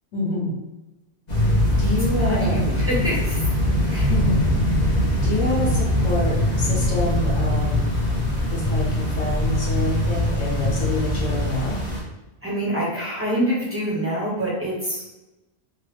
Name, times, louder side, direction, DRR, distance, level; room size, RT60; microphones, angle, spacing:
voice 1, 0.1-0.6 1.8-2.6 3.8-4.4 4.8-7.9 8.5-11.8, left 1 dB, 80° left, -5 dB, 1.3 m, -28 dB
sound 1, 1.3-12.0, left 1 dB, 40° left, 0.9 m, -22 dB
voice 2, 2.1-3.4 3.9-4.1 12.4-15.0, equal, 10° right, -7 dB, 0.9 m, -26 dB
3.1 x 2.3 x 3.2 m, 1.0 s
omnidirectional pair, 1.3 m